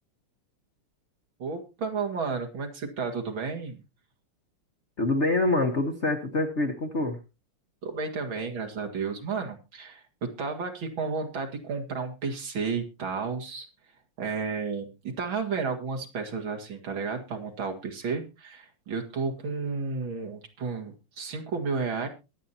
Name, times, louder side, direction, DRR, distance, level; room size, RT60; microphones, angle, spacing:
voice 1, 1.4-3.8 7.8-13.7 14.2-14.9 15.2-22.1, right 5 dB, 65° right, 2 dB, 2.8 m, -32 dB
voice 2, 5.0-7.2, left 2 dB, 35° left, 4 dB, 1.3 m, -25 dB
22.5 x 8.5 x 2.8 m, 0.28 s
omnidirectional pair, 2.4 m